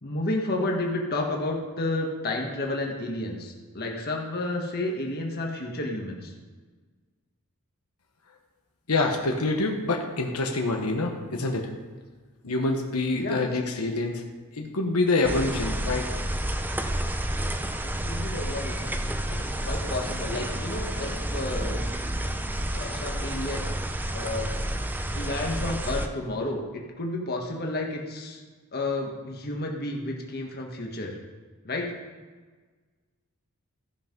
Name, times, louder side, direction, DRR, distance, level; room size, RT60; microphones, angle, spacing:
voice 1, 0.0-6.3 13.1-13.5 17.8-18.9 19.3-21.8 22.7-23.7 24.1-24.5 25.1-28.4 28.7-31.2 31.6-31.9, left 2 dB, 45° left, 0 dB, 1.5 m, -31 dB
voice 2, 8.9-11.7 12.4-14.2 14.5-16.1, left 2 dB, 85° left, 2 dB, 1.2 m, -26 dB
sound 1, 15.2-26.1, right 1 dB, 10° right, 0.5 m, -30 dB
15.0 x 5.7 x 5.3 m, 1.4 s
head